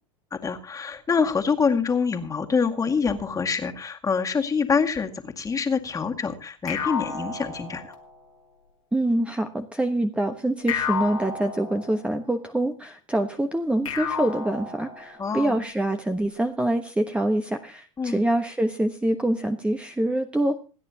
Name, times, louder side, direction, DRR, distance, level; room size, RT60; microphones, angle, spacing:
voice 1, 0.3-7.9 15.2-15.6 18.0-18.2, left 5 dB, 20° left, 4 dB, 2.1 m, -25 dB
sound 1, 6.7-8.3 10.7-12.3 13.8-15.4, left 6 dB, 90° left, 2.7 m, -32 dB
voice 2, 8.9-20.6, right 1 dB, 5° right, 6 dB, 1.1 m, -25 dB
27.5 x 9.7 x 2.9 m, 0.35 s
hypercardioid pair, 85°, 17 cm